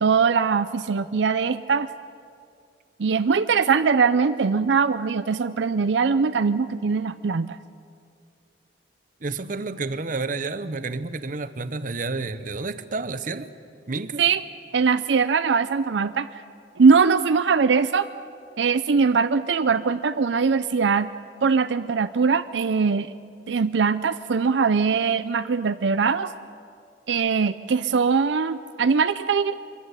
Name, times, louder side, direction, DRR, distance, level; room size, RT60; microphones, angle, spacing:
voice 1, 0.0-1.9 3.0-7.5 14.2-14.4 14.7-16.4 16.8-18.1 18.6-21.1 21.4-23.1 23.5-26.3 27.1-29.6, right 5 dB, 80° right, 12 dB, 0.5 m, -21 dB
voice 2, 9.2-13.5 13.9-14.2, right 3 dB, 50° right, 12 dB, 0.9 m, -30 dB
24.0 x 14.5 x 9.7 m, 2.4 s
head